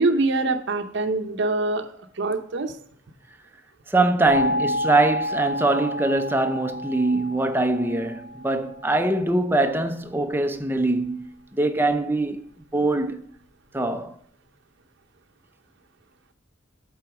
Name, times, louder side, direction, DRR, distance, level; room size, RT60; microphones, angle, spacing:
voice 1, 0.0-2.8, right 3 dB, 65° right, 0.8 m, -24 dB
voice 2, 3.9-12.4 12.7-13.3 13.7-14.2, right 2 dB, 10° right, 0.5 m, -23 dB
sound 1, 4.3-9.0, left 1 dB, 65° left, 2.2 m, -30 dB
8.2 x 3.9 x 5.8 m
head